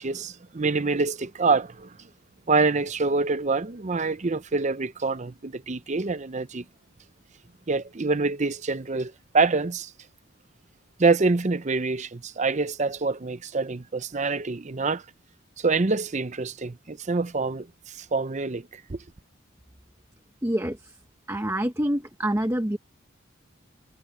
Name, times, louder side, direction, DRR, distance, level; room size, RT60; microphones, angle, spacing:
voice 1, 0.0-1.9 2.5-6.6 7.7-9.9 11.0-15.0 15.6-17.7 17.9-19.0, right 3 dB, 35° right, 0.6 m, -26 dB
voice 2, 20.4-21.0 21.3-22.8, right 1 dB, 15° right, 0.9 m, -26 dB
head